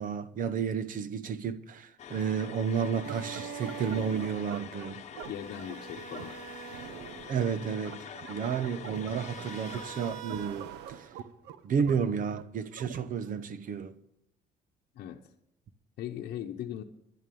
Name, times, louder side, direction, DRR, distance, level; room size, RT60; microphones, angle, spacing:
voice 1, 0.0-5.0 7.3-11.1 11.6-13.9, right 7 dB, 55° right, 1.1 m, -32 dB
sound 1, 2.0-10.2, left 8 dB, 45° left, 1.1 m, -46 dB
sound 2, 3.0-13.4, right 9 dB, 85° right, 1.0 m, -43 dB
voice 2, 5.3-6.4 14.9-15.2 16.0-16.8, left 10 dB, 65° left, 0.9 m, -39 dB
11.0 x 11.0 x 7.0 m
cardioid pair, 110°, 17 cm